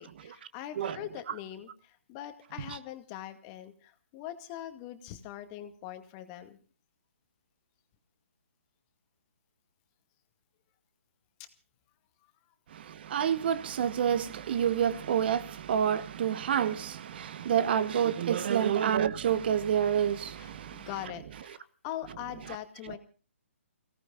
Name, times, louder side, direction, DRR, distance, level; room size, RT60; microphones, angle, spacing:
voice 1, 0.0-6.6 11.4-11.5 20.4-23.0, left 12 dB, 25° left, 2.1 m, -42 dB
voice 2, 12.7-20.9, right 9 dB, 45° right, 1.2 m, -28 dB
29.5 x 17.5 x 2.5 m
hypercardioid pair, 150°, 7 cm